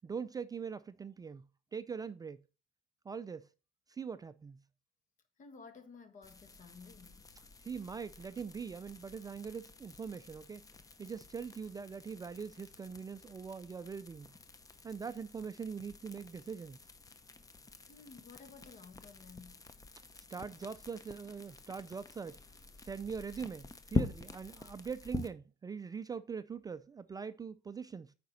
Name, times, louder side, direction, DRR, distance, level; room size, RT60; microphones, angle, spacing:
voice 1, 0.0-2.4 3.1-3.5 3.9-4.6 7.6-10.6 11.0-14.3 14.8-16.8 20.1-22.4 22.8-28.1, right 6 dB, 20° right, 0.3 m, -42 dB
voice 2, 5.4-7.2 17.8-19.7, left 5 dB, 50° left, 1.6 m, -54 dB
sound 1, 6.2-25.3, left 4 dB, 20° left, 0.8 m, -45 dB
8.7 x 5.1 x 4.0 m
cardioid pair, 110°, 17 cm